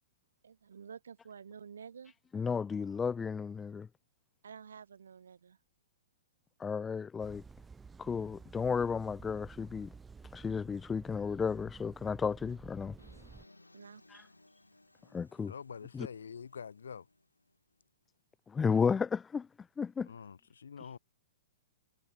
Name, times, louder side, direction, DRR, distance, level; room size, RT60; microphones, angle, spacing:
voice 1, 0.4-2.1 4.4-5.6 13.7-14.3, right 7 dB, 70° right, 4.3 m, -50 dB
voice 2, 2.3-3.9 6.6-7.4 8.0-9.9 10.3-12.9 14.1-14.2 15.1-15.5 16.0-16.1 18.5-19.5 19.8-20.1, left 6 dB, 15° left, 0.4 m, -33 dB
sound 1, 7.2-13.5, right 5 dB, 10° right, 4.9 m, -52 dB
sound 2, 13.0-17.9, left 2 dB, 90° left, 6.0 m, -63 dB
voice 3, 15.5-17.1 20.1-21.0, left 6 dB, 70° left, 3.6 m, -46 dB
figure-of-eight pair, 110°, 0 cm